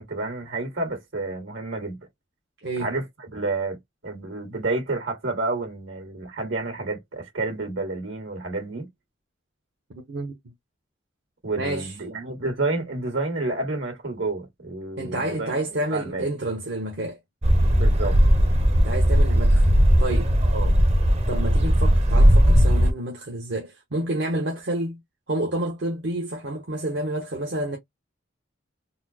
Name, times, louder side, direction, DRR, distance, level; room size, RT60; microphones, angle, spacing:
voice 1, 0.0-2.0 2.8-8.9 11.4-15.6 15.9-16.3 17.7-18.2 20.5-20.7, right 2 dB, 80° right, 1.9 m, -30 dB
voice 2, 11.6-11.9 15.0-17.2 18.8-19.6 20.0-20.3 21.3-25.0 25.3-27.8, right 1 dB, 60° right, 0.8 m, -29 dB
sound 1, 17.4-22.9, equal, 35° right, 0.7 m, -18 dB
4.1 x 2.0 x 2.8 m
head